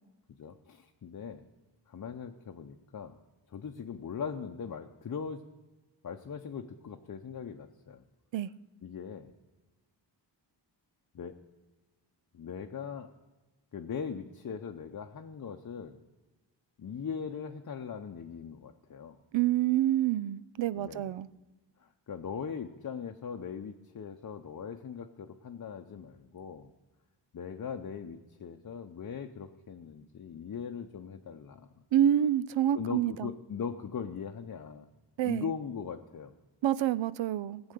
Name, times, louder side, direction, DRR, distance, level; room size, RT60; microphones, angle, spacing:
voice 1, 0.4-1.4 1.9-3.2 3.5-5.4 6.0-8.0 8.8-9.3 11.1-11.4 12.3-13.1 13.7-16.0 16.8-19.2 20.7-21.1 21.8-26.7 27.3-31.7 32.7-34.9 35.2-36.3, left 6 dB, 45° left, 4 dB, 0.7 m, -40 dB
voice 2, 19.3-21.3 31.9-33.3 35.2-35.5 36.6-37.6, right 11 dB, 80° right, 17 dB, 0.5 m, -27 dB
16.0 x 8.0 x 6.6 m, 1.2 s
wide cardioid pair, 115°, 44 cm